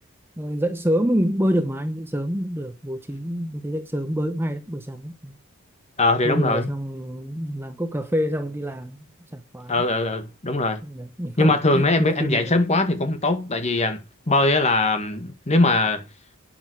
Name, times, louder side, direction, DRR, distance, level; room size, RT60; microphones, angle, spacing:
voice 1, 0.4-5.4 6.2-9.1 9.3-9.8 10.8-12.5, equal, 10° right, 0.9 m, -27 dB
voice 2, 6.0-6.7 9.7-10.8 11.4-16.1, left 2 dB, 30° left, 1.8 m, -21 dB
11.0 x 9.4 x 4.8 m
head